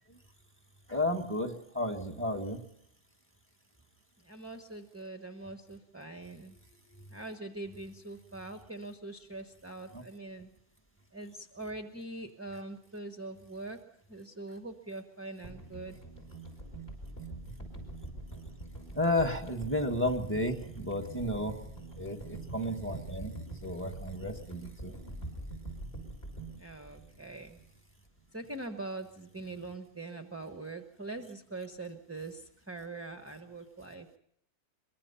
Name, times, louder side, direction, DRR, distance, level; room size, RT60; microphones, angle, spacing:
voice 1, 0.9-2.6 9.9-10.0 18.9-21.6 22.0-23.3 23.6-24.9, left 1 dB, 10° left, 5 dB, 1.7 m, -32 dB
voice 2, 4.2-6.6 7.1-10.5 11.1-13.8 14.1-16.0 26.6-27.6 28.3-34.2, right 2 dB, 10° right, 6 dB, 0.9 m, -43 dB
sound 1, 15.4-27.8 28.1-28.2, right 2 dB, 40° left, 5.7 m, -44 dB
23.5 x 22.5 x 5.7 m, 0.71 s
omnidirectional pair, 1.6 m